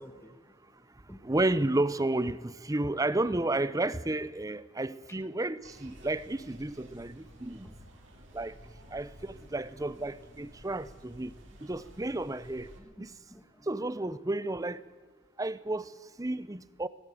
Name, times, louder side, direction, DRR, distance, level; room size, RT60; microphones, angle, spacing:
voice 1, 0.0-1.3 5.9-6.1 6.7-6.9 7.3-7.8 10.4-10.5 12.6-13.7, equal, 10° left, 7 dB, 1.4 m, -54 dB
voice 2, 1.2-7.7 8.3-8.6 8.9-11.3 11.6-12.7 13.0-13.2 13.7-14.8 15.4-16.9, right 2 dB, 15° right, 17 dB, 0.6 m, -32 dB
sound 1, 5.6-12.8, right 1 dB, 60° right, 3.4 m, -53 dB
18.5 x 18.0 x 9.3 m, 1.4 s
head